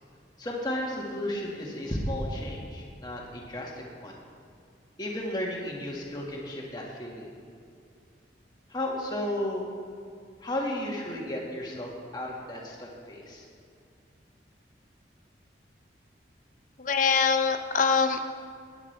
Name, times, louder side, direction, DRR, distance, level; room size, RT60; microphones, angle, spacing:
voice 1, 0.4-4.2 5.0-7.3 8.7-9.7 10.4-13.4, left 1 dB, 20° left, -2 dB, 1.8 m, -33 dB
voice 2, 16.8-18.2, left 5 dB, 45° left, 7 dB, 0.7 m, -23 dB
19.0 x 9.8 x 3.4 m, 2.3 s
head